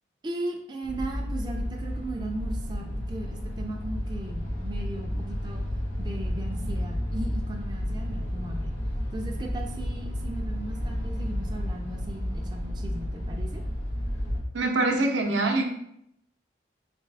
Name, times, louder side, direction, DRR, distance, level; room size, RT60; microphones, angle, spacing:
voice 1, 0.2-5.6 6.0-8.7 9.1-13.6, right 1 dB, 25° right, 1 dB, 0.3 m, -37 dB
sound 1, 0.8-14.4, equal, 80° left, 1.2 m, -31 dB
voice 2, 14.5-15.6, right 2 dB, 85° right, 3 dB, 0.6 m, -24 dB
3.4 x 3.2 x 3.3 m, 0.74 s
head